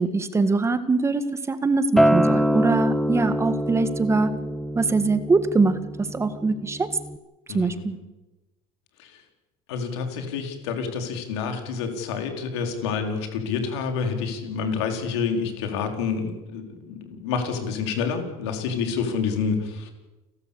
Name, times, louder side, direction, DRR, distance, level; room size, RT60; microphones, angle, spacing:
voice 1, 0.0-4.3 4.8-6.9 7.5-8.0, right 3 dB, 20° right, 11 dB, 1.8 m, -23 dB
Acoustic guitar, 2.0-7.2, equal, ahead, 1.1 m, -24 dB
voice 2, 7.5-7.8 9.0-9.2 9.7-19.9, left 5 dB, 90° left, 5 dB, 4.3 m, -28 dB
29.5 x 12.5 x 8.5 m, 1.1 s
supercardioid pair, 105°, 14 cm